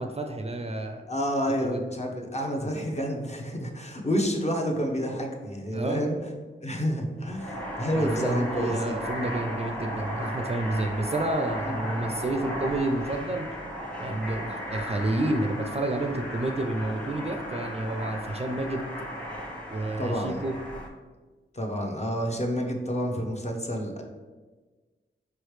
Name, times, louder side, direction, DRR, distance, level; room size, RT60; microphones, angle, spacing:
voice 1, 0.0-1.0 1.6-1.8 5.7-6.0 7.9-13.5 14.0-18.9 19.7-20.6, right 2 dB, 30° right, 5 dB, 0.4 m, -30 dB
voice 2, 1.1-6.2 6.6-9.0 11.7-11.9 20.0-20.4 21.5-24.0, equal, 35° left, 1 dB, 0.8 m, -29 dB
sound 1, 7.2-20.9, equal, 5° left, 0.9 m, -35 dB
4.5 x 3.1 x 3.2 m, 1.3 s
cardioid pair, 45°, 21 cm